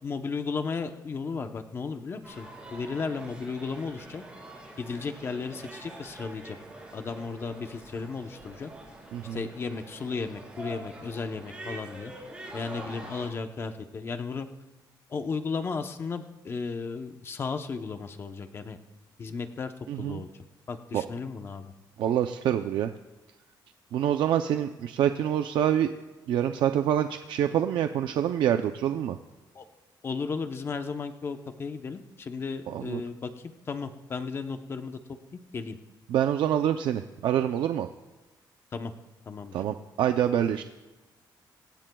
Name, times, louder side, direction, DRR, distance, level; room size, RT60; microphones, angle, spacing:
voice 1, 0.0-4.2 4.8-6.6 6.9-8.7 9.3-12.1 12.5-14.5 15.1-18.8 19.2-19.7 20.0-20.3 20.7-21.7 29.5-29.6 30.0-35.0 35.5-35.8 38.7-38.9 39.3-39.5, left 4 dB, 30° left, 7 dB, 0.8 m, -34 dB
sound 1, 2.2-13.3, right 1 dB, 15° right, 4.1 m, -45 dB
voice 2, 9.1-9.5 19.9-20.2 20.9-21.1 22.0-22.9 23.9-25.9 26.3-29.2 32.7-33.0 36.1-37.9 39.5-40.6, right 10 dB, 80° right, 7 dB, 0.5 m, -26 dB
24.0 x 17.5 x 2.3 m, 1.1 s
cardioid pair, 175°, 8 cm